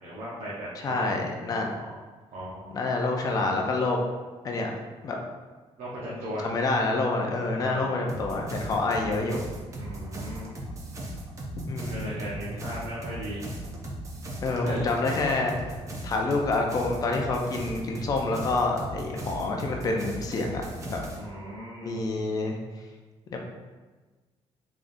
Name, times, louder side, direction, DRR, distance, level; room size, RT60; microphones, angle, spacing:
voice 1, 0.0-1.1 1.4-2.0 2.3-2.9 5.8-6.5 7.6-8.1 9.8-10.5 11.9-13.5 14.6-14.8 21.2-22.0, equal, 75° right, -7 dB, 0.8 m, -37 dB
voice 2, 0.8-1.7 2.7-4.0 4.4-4.7 5.0-5.2 6.4-9.4 11.7-12.1 14.4-15.5 16.0-20.6 20.9-21.0 21.8-22.6 23.3-23.4, left 3 dB, 35° left, 1 dB, 0.4 m, -27 dB
sound 1, 8.1-21.2, right 1 dB, 30° right, 0.5 m, -38 dB
3.7 x 3.4 x 2.5 m, 1.3 s
cardioid pair, 180°, 11 cm